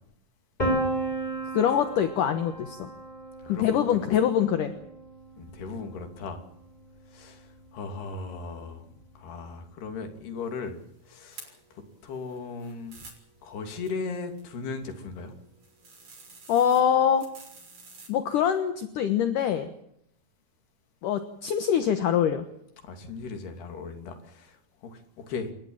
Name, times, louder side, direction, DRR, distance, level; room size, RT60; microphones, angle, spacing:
Piano, 0.6-6.4, right 1 dB, 10° left, 6.2 m, -34 dB
voice 1, 1.5-2.9 3.5-4.7 16.5-17.3 18.1-19.7 21.0-22.5, left 9 dB, 65° left, 9 dB, 2.6 m, -24 dB
voice 2, 3.4-4.2 5.4-6.4 7.1-8.9 9.2-10.8 11.0-13.0 13.4-15.3 22.8-25.5, left 4 dB, 85° left, 6 dB, 4.9 m, -37 dB
sound 1, 10.4-18.1, right 3 dB, 50° right, 7.6 m, -52 dB
29.5 x 14.5 x 8.8 m, 0.75 s
omnidirectional pair, 4.5 m